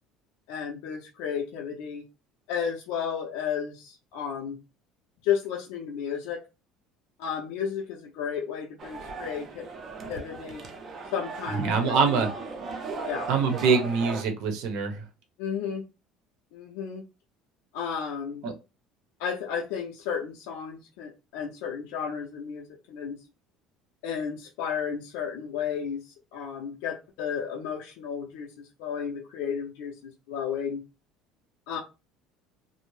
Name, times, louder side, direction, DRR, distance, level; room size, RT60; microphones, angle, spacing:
voice 1, 0.5-2.0 2.5-4.6 5.2-6.4 7.2-9.7 10.1-10.6 11.1-12.3 13.0-13.3 15.4-15.8 16.5-17.0 17.7-18.4 19.2-23.2 24.0-26.0 26.3-30.8 31.7-31.8, left 7 dB, 80° left, 0.5 m, -33 dB
sound 1, 8.8-14.2, right 3 dB, 35° right, 0.5 m, -37 dB
voice 2, 11.5-12.3 13.3-15.0 18.4-18.5, right 5 dB, 65° right, 0.7 m, -24 dB
2.6 x 2.0 x 3.1 m
cardioid pair, 150°, 0 cm